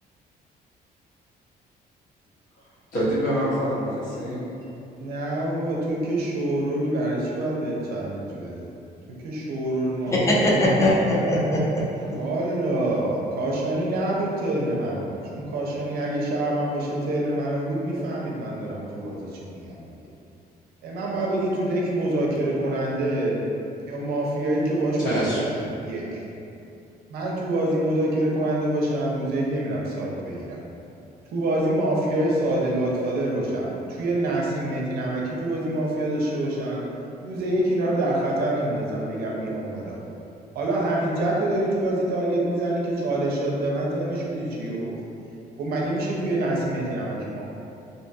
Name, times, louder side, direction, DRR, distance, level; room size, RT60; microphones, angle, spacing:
voice 1, 2.9-4.5 25.0-25.4, equal, 55° left, -9 dB, 0.9 m, -25 dB
voice 2, 5.0-8.8 9.2-10.7 12.1-19.9 20.8-23.5 23.8-26.2 27.1-30.6 31.3-36.8 37.2-40.0 40.5-45.0 45.6-47.4, right 1 dB, 70° right, -3 dB, 0.5 m, -26 dB
voice 3, 10.1-12.3, left 1 dB, 20° left, -5 dB, 0.4 m, -21 dB
2.6 x 2.2 x 2.6 m, 2.7 s
cardioid pair, 145°, 17 cm